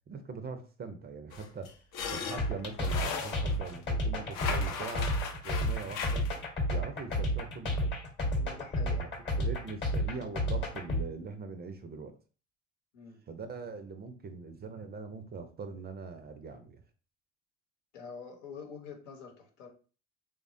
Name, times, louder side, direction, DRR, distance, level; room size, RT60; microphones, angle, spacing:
voice 1, 0.1-1.7 2.1-5.2 5.4-6.3 6.6-8.0 9.0-9.1 9.4-12.1 13.3-16.8, right 4 dB, 25° right, 7 dB, 0.5 m, -42 dB
sound 1, 1.3-3.8 4.3-6.4, left 6 dB, 55° left, 0.7 m, -38 dB
sound 2, 2.4-11.0, equal, 30° left, 1.0 m, -31 dB
voice 2, 8.3-9.1 12.9-13.2 17.9-19.7, left 5 dB, 75° left, 1 dB, 1.0 m, -46 dB
3.2 x 2.1 x 2.5 m, 0.37 s
hypercardioid pair, 65°, 37 cm